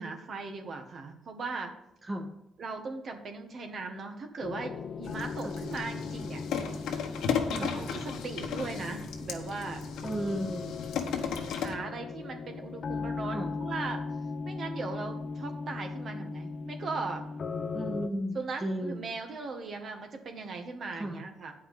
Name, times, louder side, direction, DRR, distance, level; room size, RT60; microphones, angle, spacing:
voice 1, 0.0-1.7 2.6-6.4 7.6-9.8 11.5-14.0 14.4-17.2 18.3-21.5, right 4 dB, 55° right, 4 dB, 1.5 m, -38 dB
sound 1, 4.4-18.1, left 4 dB, 50° left, 0.7 m, -38 dB
sound 2, 5.0-11.7, left 7 dB, 85° left, 1.2 m, -35 dB
voice 2, 10.0-10.8 13.3-13.5 17.7-19.1 20.9-21.2, right 1 dB, 25° right, 3 dB, 1.3 m, -34 dB
8.7 x 5.6 x 7.7 m, 0.84 s
cardioid pair, 90°, 0 cm